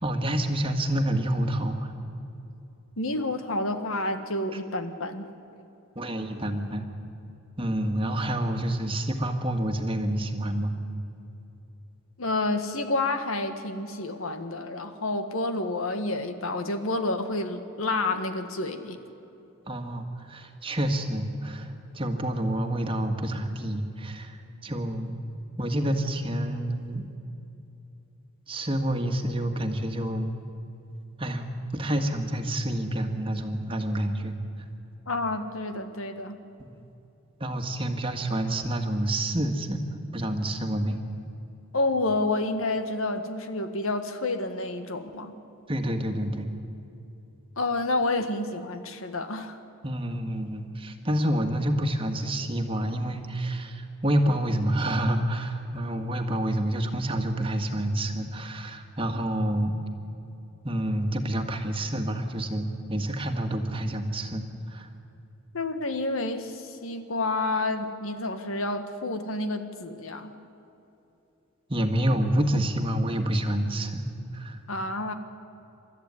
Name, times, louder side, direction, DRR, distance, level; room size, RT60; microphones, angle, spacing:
voice 1, 0.0-1.9 6.0-6.8 7.6-10.7 19.7-24.4 24.6-25.1 25.6-27.1 28.5-30.3 31.2-31.4 31.7-34.4 36.6-36.8 37.4-39.8 40.1-41.0 45.7-46.5 49.8-59.7 60.6-64.4 64.7-64.9 71.7-74.1 74.3-74.6, right 1 dB, 25° right, 5 dB, 1.7 m, -28 dB
voice 2, 3.0-5.3 12.2-19.0 35.1-36.4 41.7-45.3 47.6-49.6 65.5-70.3 74.7-75.1, left 2 dB, 70° left, 8 dB, 1.7 m, -29 dB
29.0 x 13.5 x 9.7 m, 2.8 s
head